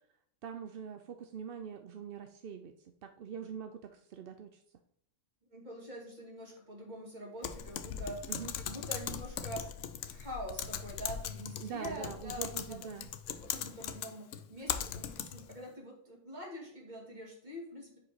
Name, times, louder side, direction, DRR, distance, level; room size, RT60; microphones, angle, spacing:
voice 1, 0.4-4.6 8.3-8.5 11.6-13.1, right 7 dB, 60° right, 7 dB, 0.6 m, -44 dB
voice 2, 5.5-9.7 10.1-18.0, right 1 dB, 35° right, -1 dB, 2.1 m, -45 dB
Typing, 7.4-15.6, left 9 dB, 75° left, 0.9 m, -39 dB
5.1 x 5.1 x 4.0 m, 0.69 s
omnidirectional pair, 1.3 m